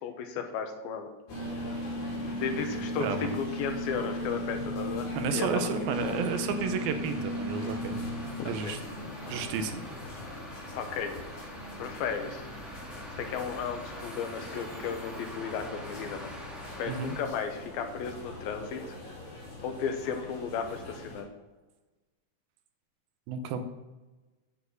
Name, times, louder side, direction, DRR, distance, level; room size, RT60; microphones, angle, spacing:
voice 1, 0.0-1.1 2.4-3.1 3.3-5.6 6.0-6.3 8.4-8.8 10.7-11.1 11.8-12.5 13.2-16.3 16.8-19.0 19.6-21.3, left 6 dB, 80° left, 6 dB, 2.9 m, -34 dB
sound 1, 1.3-21.2, left 1 dB, 55° left, 4.5 m, -38 dB
voice 2, 3.0-3.3 5.1-7.9 8.5-8.8 9.3-9.8 16.9-17.1 23.3-23.6, right 5 dB, 80° right, 8 dB, 2.7 m, -31 dB
sound 2, 5.9-17.2, equal, ahead, 1.5 m, -45 dB
9.0 x 7.2 x 6.4 m, 1.2 s
omnidirectional pair, 4.2 m